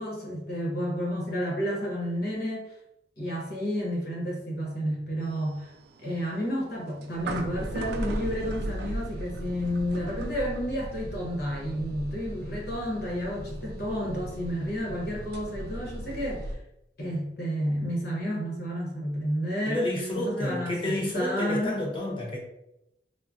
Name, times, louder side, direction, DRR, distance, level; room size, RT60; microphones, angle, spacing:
voice 1, 0.0-2.7 3.2-5.7 6.0-16.5 17.0-19.9 20.2-21.8, equal, 55° left, -2 dB, 1.0 m, -31 dB
sound 1, 5.2-16.6, right 1 dB, 60° right, 0.3 m, -37 dB
voice 2, 19.7-22.4, left 1 dB, 30° left, -1 dB, 0.6 m, -30 dB
3.6 x 2.1 x 2.5 m, 0.85 s
head